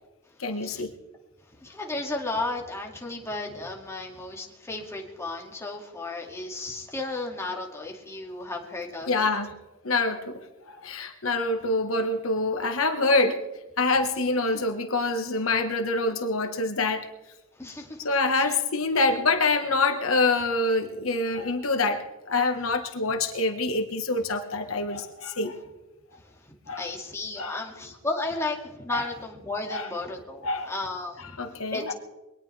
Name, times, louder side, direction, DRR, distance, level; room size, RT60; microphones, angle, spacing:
voice 1, 0.4-0.9 9.1-9.5 9.8-10.4 10.7-13.4 13.8-17.1 18.0-25.6 26.7-26.9 27.4-27.6 28.9-29.0 29.7-29.9 30.4-30.7 31.2-31.9, left 3 dB, 70° left, 6 dB, 1.4 m, -26 dB
voice 2, 1.6-9.3 14.5-14.6 17.6-18.0 18.3-18.5 26.8-31.9, left 2 dB, 15° left, 0 dB, 2.2 m, -34 dB
22.5 x 18.5 x 3.4 m, 1.0 s
head